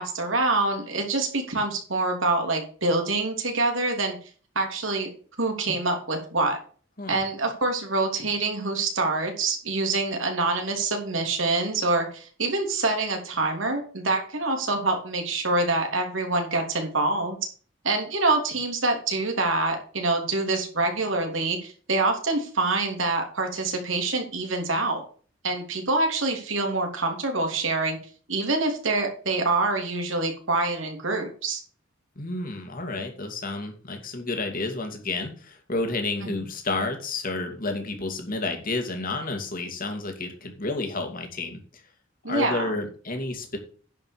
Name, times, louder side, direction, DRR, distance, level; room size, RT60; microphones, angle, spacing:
voice 1, 0.0-4.1 4.5-5.1 5.4-6.6 7.1-17.4 17.8-25.0 25.4-28.0 28.3-31.6 42.2-42.7, right 3 dB, 90° right, 3 dB, 3.2 m, -26 dB
voice 2, 32.2-41.8 42.2-43.6, left 2 dB, 45° left, 4 dB, 2.6 m, -30 dB
10.5 x 5.4 x 6.7 m, 0.41 s
head